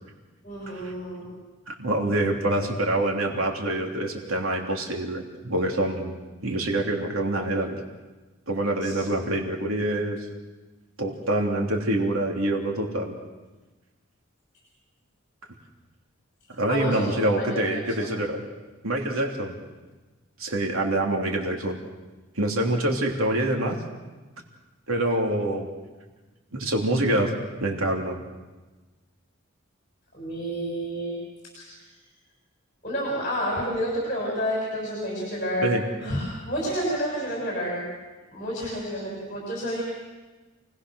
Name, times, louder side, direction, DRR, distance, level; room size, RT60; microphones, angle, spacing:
voice 1, 0.4-1.4 8.8-8.9 16.7-18.1 30.1-31.2 31.5-31.7 32.8-35.7 36.0-37.9 38.3-39.8, equal, 40° left, -4 dB, 6.7 m, -30 dB
voice 2, 1.7-6.1 6.4-7.8 8.5-10.2 11.0-13.1 16.5-18.4 18.8-19.6 20.4-21.8 22.3-23.8 24.9-25.7 26.5-27.3 27.6-28.2 35.6-35.8, right 1 dB, 85° right, 1 dB, 3.2 m, -26 dB
29.0 x 19.5 x 6.4 m, 1.2 s
head